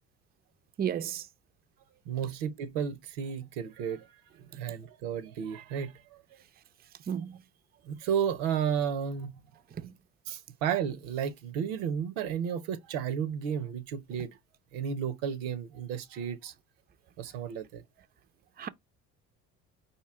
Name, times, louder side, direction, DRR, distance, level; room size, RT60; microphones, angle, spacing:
voice 1, 0.8-1.3 7.1-7.4 9.8-9.9 18.6-18.7, right 9 dB, 30° right, 0.4 m, -33 dB
voice 2, 2.1-4.1 4.5-6.2 7.8-9.3 10.3-14.3 14.7-16.5 17.2-17.8, right 8 dB, 85° right, 0.7 m, -33 dB
4.5 x 2.7 x 3.5 m
supercardioid pair, 70°, 34 cm